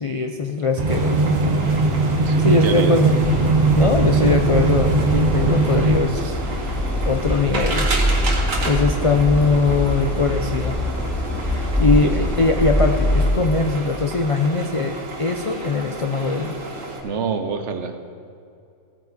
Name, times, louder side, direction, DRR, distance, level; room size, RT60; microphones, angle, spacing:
voice 1, 0.0-1.4 2.4-3.2 3.8-6.4 7.1-7.9 8.7-10.8 11.8-16.6, left 4 dB, 50° left, 4 dB, 0.4 m, -21 dB
sound 1, 0.8-6.0, right 3 dB, 40° right, 0.8 m, -19 dB
sound 2, 0.9-17.0, right 2 dB, 85° right, 1.9 m, -32 dB
voice 2, 2.2-3.0 12.0-12.3 17.0-18.1, right 5 dB, 65° right, 7 dB, 1.1 m, -26 dB
sound 3, 3.2-13.3, equal, ahead, 1.8 m, -24 dB
16.0 x 8.9 x 4.1 m, 2.5 s
omnidirectional pair, 1.4 m